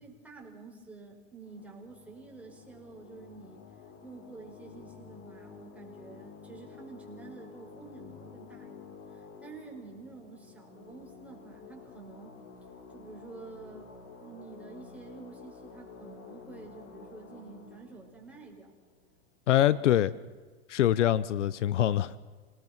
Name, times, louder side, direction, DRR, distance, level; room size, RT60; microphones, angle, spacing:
voice 1, 0.0-3.6 4.0-12.4 12.9-14.0 14.2-18.7 19.6-20.1, right 4 dB, 5° right, -1 dB, 5.2 m, -49 dB
sound 1, 1.4-19.6, left 5 dB, 35° left, 3.7 m, -51 dB
voice 2, 19.5-20.1 20.7-22.1, left 12 dB, 80° left, 18 dB, 0.9 m, -24 dB
27.5 x 19.0 x 6.1 m, 1.4 s
hypercardioid pair, 120°, 35 cm